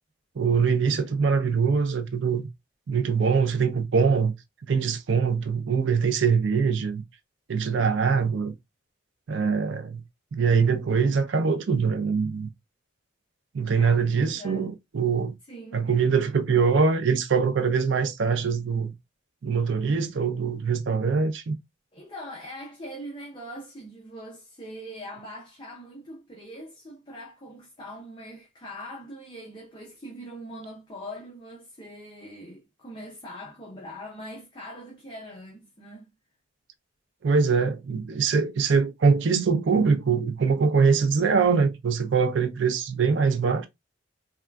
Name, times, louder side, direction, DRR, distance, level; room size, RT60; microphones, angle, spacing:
voice 1, 0.4-2.5 2.9-4.3 4.7-7.0 7.5-8.5 9.3-10.0 10.3-12.5 13.5-15.3 15.7-18.9 19.4-21.5 37.2-43.7, right 5 dB, 70° right, 0.4 m, -23 dB
voice 2, 13.8-14.7 15.5-15.9 21.9-36.1, equal, 25° left, 0.6 m, -42 dB
3.6 x 2.3 x 2.2 m
head